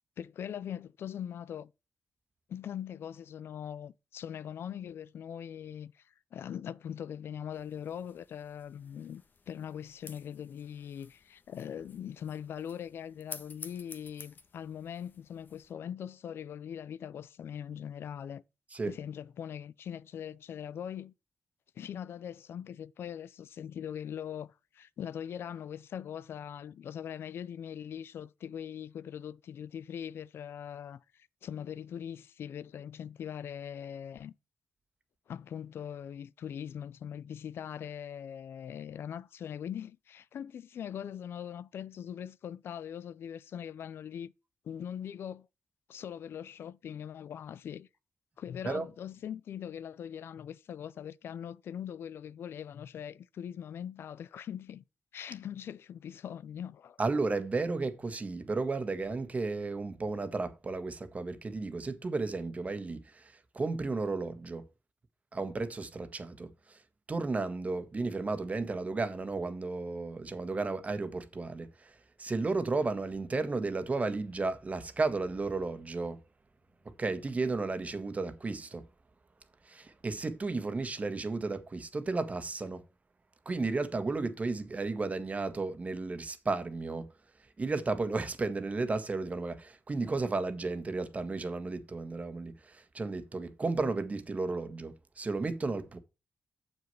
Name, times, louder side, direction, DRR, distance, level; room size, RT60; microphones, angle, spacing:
voice 1, 0.2-1.7 2.5-18.4 18.9-21.1 21.8-34.3 35.3-44.3 44.6-45.5 45.9-47.9 48.4-54.8 55.1-57.0, left 9 dB, 75° left, 0.4 m, -41 dB
sound 1, 7.5-15.7, left 4 dB, 50° left, 1.4 m, -52 dB
voice 2, 57.0-64.7 65.3-66.8 67.1-76.2 76.8-78.9 79.6-82.9 83.4-96.0, right 3 dB, 35° right, 1.5 m, -33 dB
7.1 x 6.3 x 5.7 m
cardioid pair, 70°, 4 cm